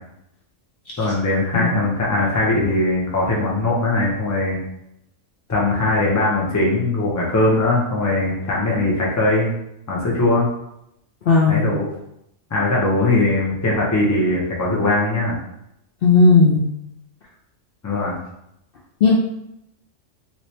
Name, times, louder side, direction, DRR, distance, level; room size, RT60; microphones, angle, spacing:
voice 1, 1.0-4.6 5.5-9.5 9.9-10.5 11.5-11.9 12.5-15.4 17.8-18.2, left 2 dB, 20° left, -3 dB, 0.5 m, -20 dB
voice 2, 11.3-11.7 16.0-16.6 19.0-19.1, left 4 dB, 60° left, -3 dB, 0.6 m, -14 dB
3.2 x 2.9 x 2.8 m, 0.80 s
omnidirectional pair, 1.3 m